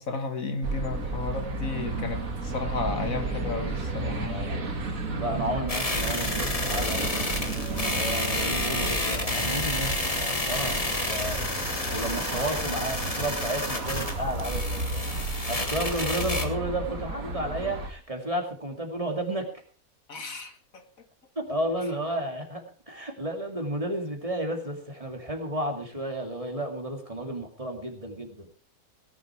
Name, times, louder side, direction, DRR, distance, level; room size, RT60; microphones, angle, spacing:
voice 1, 0.0-4.5 10.9-11.2 20.1-21.1, left 4 dB, 70° left, 2.0 m, -34 dB
sound 1, 0.6-17.9, right 3 dB, 70° right, 2.4 m, -32 dB
voice 2, 4.2-4.8 5.2-10.0 10.4-11.4 11.9-15.1 15.5-19.5 21.4-28.5, right 1 dB, 25° right, 2.5 m, -32 dB
sound 2, 5.7-16.4, left 2 dB, 25° left, 1.9 m, -30 dB
18.0 x 11.0 x 4.6 m
omnidirectional pair, 1.5 m